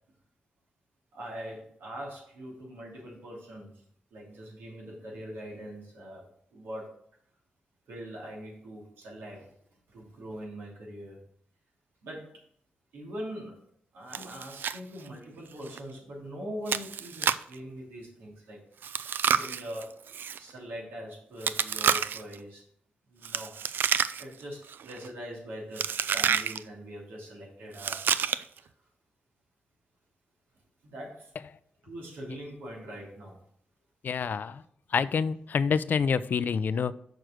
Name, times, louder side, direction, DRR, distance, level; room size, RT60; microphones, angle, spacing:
voice 1, 1.1-3.8 4.1-6.9 7.9-9.5 9.9-11.2 12.0-12.3 12.9-13.6 13.9-18.6 19.2-19.9 20.4-22.6 23.1-23.5 24.2-28.0 28.6-28.7 30.8-31.3 31.8-33.4, equal, 85° right, -3 dB, 2.9 m, -42 dB
Chewing mastication, 14.1-14.8 15.1-15.2 15.7-15.8 16.7-17.5 18.8-20.4 21.4-22.3 23.2-24.4 24.7-25.1 25.8-26.6 27.7-28.6, right 7 dB, 70° right, 0.4 m, -29 dB
voice 2, 34.0-34.6 34.9-36.9, left 6 dB, 60° left, 16 dB, 0.4 m, -27 dB
6.5 x 4.7 x 6.2 m, 0.66 s
cardioid pair, 65°, 4 cm